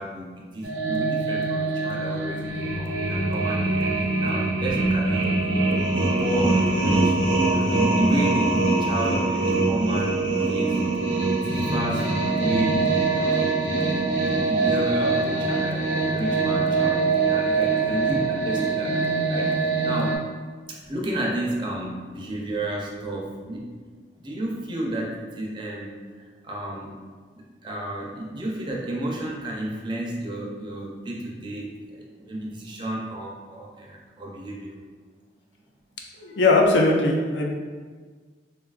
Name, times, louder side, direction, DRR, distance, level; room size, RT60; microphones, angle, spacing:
voice 1, 0.0-5.7 5.9-7.2 7.5-10.9 11.4-13.5 13.9-19.0 19.3-20.2 20.7-23.7 24.2-27.0 27.3-34.7, right 1 dB, 25° right, -2 dB, 0.4 m, -32 dB
sound 1, 0.6-20.2, right 3 dB, 80° right, 0.5 m, -23 dB
voice 2, 36.2-37.5, left 2 dB, 75° left, 0 dB, 0.5 m, -20 dB
3.7 x 2.3 x 2.3 m, 1.5 s
head